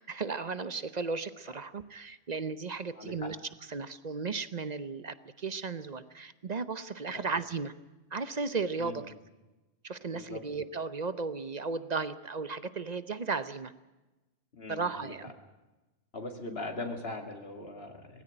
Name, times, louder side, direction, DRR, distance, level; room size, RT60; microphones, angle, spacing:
voice 1, 0.0-3.4 3.6-7.7 8.1-9.1 9.8-13.7 14.7-15.3, right 4 dB, 40° right, 14 dB, 0.8 m, -35 dB
voice 2, 2.9-3.3 7.1-7.2 8.8-9.0 10.1-10.4 14.5-15.1 16.1-18.2, left 2 dB, 55° left, 4 dB, 2.4 m, -40 dB
18.5 x 16.0 x 10.0 m, 1.1 s
omnidirectional pair, 1.2 m